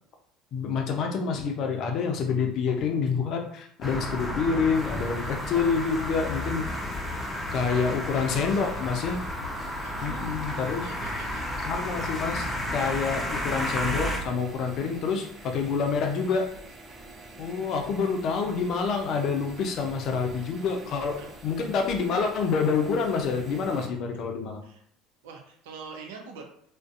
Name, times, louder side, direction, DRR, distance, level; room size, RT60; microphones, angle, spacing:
voice 1, 0.5-6.7 7.5-9.2 10.0-10.8 11.7-16.5 17.4-24.6, left 5 dB, 60° left, 3 dB, 0.5 m, -27 dB
sound 1, 3.8-14.2, left 1 dB, 15° left, 0.6 m, -32 dB
sound 2, 4.7-23.9, right 2 dB, 35° right, 0.6 m, -46 dB
voice 2, 9.8-11.5 20.8-20.9 21.2-21.3 24.6-24.8 25.2-26.4, right 5 dB, 85° right, 2 dB, 0.5 m, -43 dB
2.5 x 2.1 x 2.4 m, 0.66 s
supercardioid pair, 80°, 0 cm